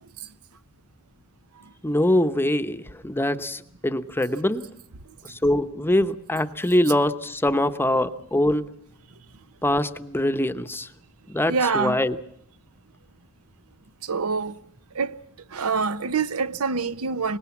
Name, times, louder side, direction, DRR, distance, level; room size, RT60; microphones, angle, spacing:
voice 1, 1.8-4.7 5.2-8.7 9.6-10.9 11.3-12.2, left 1 dB, 10° left, 0.9 m, -23 dB
voice 2, 11.5-12.0 14.1-14.5 15.0-15.1 15.5-17.4, right 5 dB, 75° right, 0.8 m, -25 dB
25.0 x 20.0 x 7.2 m
head